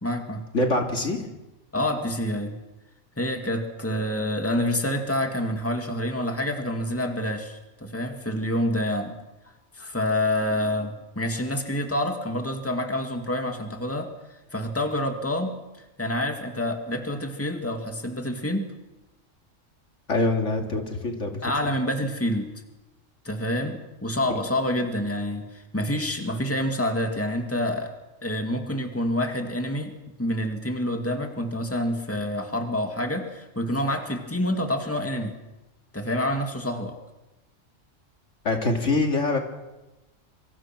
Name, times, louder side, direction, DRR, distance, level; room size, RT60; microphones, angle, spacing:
voice 1, 0.0-0.4 1.7-2.6 3.2-9.1 9.7-18.7 21.4-22.5 23.2-27.9 28.2-35.4 35.9-36.9, left 1 dB, 10° left, 4 dB, 2.3 m, -27 dB
voice 2, 0.5-1.2 20.1-21.4 38.4-39.4, left 2 dB, 70° left, 3 dB, 2.8 m, -24 dB
26.5 x 25.0 x 6.1 m, 1.0 s
omnidirectional pair, 1.3 m